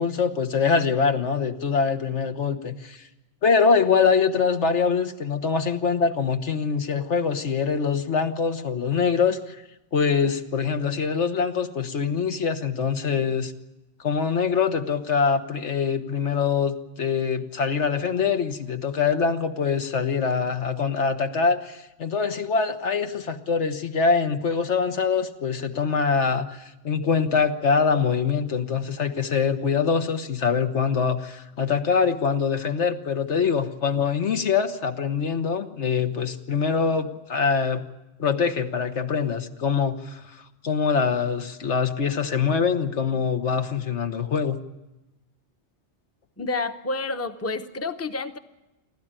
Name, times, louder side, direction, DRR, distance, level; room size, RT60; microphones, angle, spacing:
voice 1, 0.0-3.0 3.4-9.4 9.9-13.5 14.0-37.9 38.2-40.2 40.6-44.6, left 5 dB, 80° left, 7 dB, 1.5 m, -24 dB
voice 2, 46.4-48.4, left 3 dB, 15° left, 8 dB, 0.8 m, -29 dB
28.5 x 12.5 x 8.9 m, 0.98 s
omnidirectional pair, 1.2 m